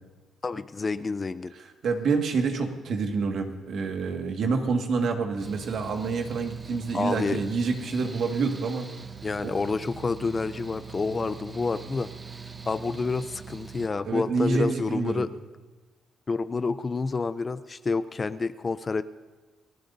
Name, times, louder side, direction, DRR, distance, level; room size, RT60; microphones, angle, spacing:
voice 1, 0.4-1.5 6.9-7.4 9.2-12.1 12.7-15.3 16.3-19.0, left 4 dB, 30° left, 13 dB, 0.5 m, -28 dB
voice 2, 1.6-8.9 9.4-9.6 14.0-15.2, right 4 dB, 65° right, 4 dB, 1.8 m, -27 dB
Mechanical fan, 5.4-13.9, right 6 dB, 25° right, 0.9 m, -42 dB
29.0 x 16.0 x 2.7 m, 1.3 s
cardioid pair, 90°, 0 cm